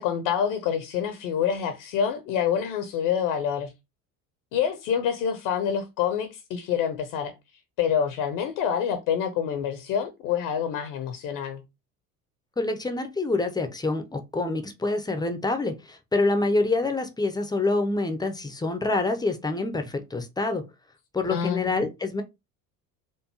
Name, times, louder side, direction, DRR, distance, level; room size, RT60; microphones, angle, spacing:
voice 1, 0.0-3.7 4.5-7.3 7.8-11.6 21.3-21.9, left 8 dB, 55° left, 0.9 m, -27 dB
voice 2, 12.6-20.6 21.1-22.2, left 3 dB, 10° left, 0.7 m, -26 dB
4.6 x 2.5 x 2.9 m
figure-of-eight pair, 60°, 49 cm